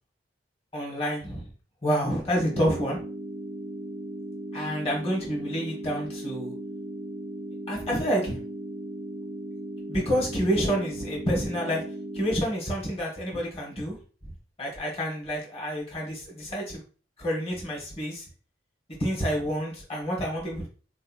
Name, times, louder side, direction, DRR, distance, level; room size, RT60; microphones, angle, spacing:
voice 1, 0.7-1.5 1.8-3.0 4.5-6.5 7.7-8.4 9.9-11.8 12.1-14.0 14.2-14.3 14.6-16.8 17.2-18.2 19.0-20.7, equal, 35° left, -3 dB, 1.0 m, -28 dB
sound 1, 2.3-12.4, right 1 dB, 25° right, 0.4 m, -37 dB
3.7 x 2.7 x 2.3 m, 0.39 s
head